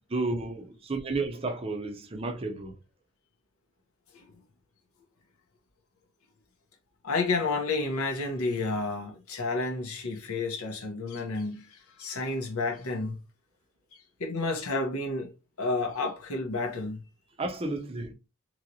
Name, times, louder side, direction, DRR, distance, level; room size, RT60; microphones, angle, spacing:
voice 1, 0.1-2.7 17.4-18.1, right 3 dB, 25° right, 0.5 m, -32 dB
voice 2, 7.0-13.2 14.2-15.3 15.6-17.0, left 3 dB, 90° left, 0.8 m, -30 dB
3.1 x 2.9 x 2.6 m
head